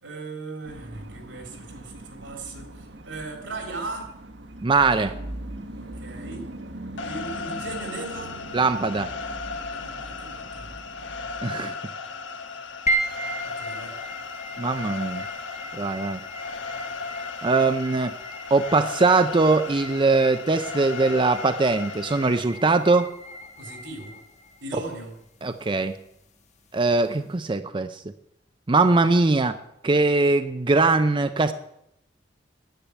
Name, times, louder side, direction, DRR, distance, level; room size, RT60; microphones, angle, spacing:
voice 1, 0.0-4.2 5.7-6.5 7.0-8.4 9.7-10.8 13.4-14.0 23.6-24.2 24.6-25.2, right 3 dB, 85° right, 2 dB, 3.5 m, -38 dB
sound 1, 0.6-11.4, right 1 dB, 65° right, 1.3 m, -41 dB
voice 2, 4.6-5.1 8.5-9.1 11.4-11.7 14.6-15.2 15.7-16.2 17.4-18.2 18.5-23.1 25.4-26.0 26.7-28.0 28.7-29.6 29.8-31.5, right 3 dB, 25° right, 9 dB, 0.5 m, -21 dB
sound 2, 7.0-22.4, left 4 dB, 85° left, 1.2 m, -36 dB
sound 3, 12.9-27.3, right 1 dB, 40° left, 1.1 m, -36 dB
10.0 x 10.0 x 8.2 m, 0.79 s
head